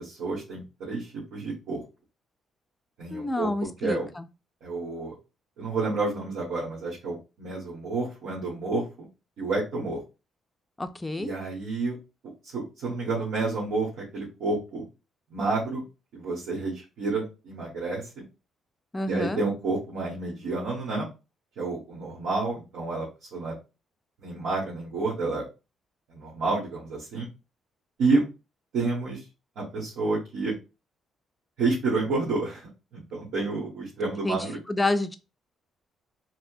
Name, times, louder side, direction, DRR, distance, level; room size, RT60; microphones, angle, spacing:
voice 1, 0.0-1.8 3.0-3.5 3.8-4.1 4.6-5.1 5.6-9.1 9.4-10.0 11.2-12.0 12.4-14.8 15.3-15.8 16.1-18.0 19.1-21.1 21.6-23.5 24.2-25.4 26.1-27.3 28.0-28.2 28.7-29.2 29.6-30.5 31.6-34.6, right 3 dB, 80° right, 1.2 m, -29 dB
voice 2, 3.1-4.3 10.8-11.3 18.9-19.4 34.2-35.2, left 2 dB, 15° left, 0.4 m, -29 dB
4.3 x 2.1 x 2.6 m
cardioid pair, 90°, 0 cm